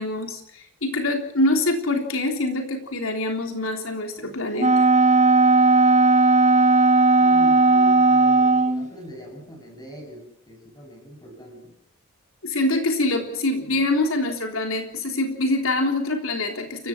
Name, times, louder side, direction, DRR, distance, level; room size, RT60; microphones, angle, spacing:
voice 1, 0.0-4.8 12.4-16.9, left 2 dB, 80° left, 4 dB, 3.5 m, -25 dB
Wind instrument woodwind instrument, 4.6-8.9, right 3 dB, 35° right, 1.0 m, -16 dB
voice 2, 7.2-11.8, equal, 20° left, 3 dB, 7.6 m, -42 dB
29.5 x 16.5 x 6.0 m, 0.75 s
head